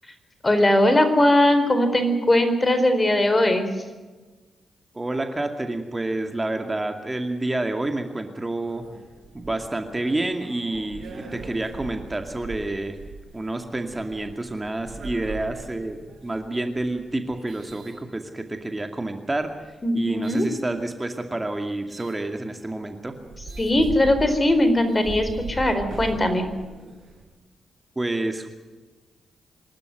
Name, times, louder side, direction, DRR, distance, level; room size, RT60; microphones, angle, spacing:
voice 1, 0.4-3.7 19.8-20.5 23.6-26.5, left 1 dB, 30° left, 9 dB, 4.3 m, -20 dB
voice 2, 4.9-8.8 9.3-13.0 13.3-16.0 16.2-19.6 19.9-23.1 28.0-28.5, right 2 dB, 25° right, 5 dB, 2.4 m, -29 dB
sound 1, 8.6-18.6 19.3-20.5 21.9-22.2 22.7-22.8 23.1-27.3, right 4 dB, 60° right, 6.7 m, -40 dB
26.0 x 12.5 x 9.5 m, 1.2 s
hypercardioid pair, 40°, 0 cm